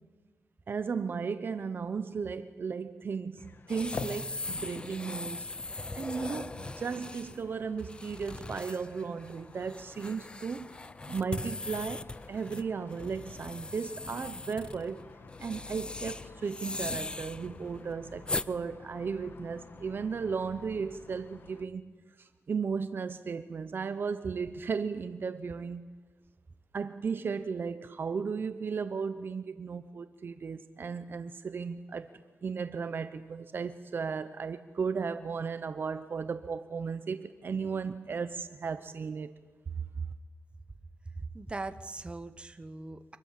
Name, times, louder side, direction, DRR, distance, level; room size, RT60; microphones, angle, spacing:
voice 1, 0.7-5.5 5.9-15.0 15.4-21.9 22.2-25.9 26.7-32.1 32.4-39.3, right 5 dB, 50° right, 0.9 m, -35 dB
sound 1, 3.4-21.7, left 4 dB, 50° left, 1.4 m, -49 dB
sound 2, 3.7-18.5, left 2 dB, 20° left, 0.7 m, -40 dB
voice 2, 41.2-43.2, right 3 dB, 25° right, 1.3 m, -40 dB
25.5 x 21.0 x 7.6 m
wide cardioid pair, 105°, 5 cm